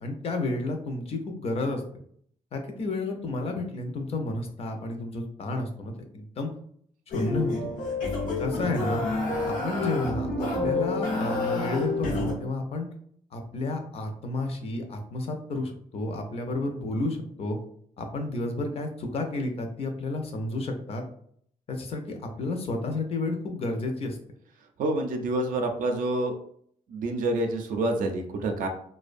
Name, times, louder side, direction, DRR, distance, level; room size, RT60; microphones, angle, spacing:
voice 1, 0.0-1.8 2.5-6.5 7.1-7.7 8.4-9.0 9.4-12.9 13.3-17.6 18.0-21.0 21.7-24.2, left 2 dB, 45° left, 4 dB, 0.5 m, -31 dB
sound 1, 7.1-12.3, left 3 dB, 80° left, 0.8 m, -28 dB
voice 2, 24.8-26.3 26.9-28.7, right 2 dB, 85° right, 4 dB, 0.4 m, -27 dB
2.5 x 2.1 x 2.4 m, 0.64 s
cardioid pair, 140°, 14 cm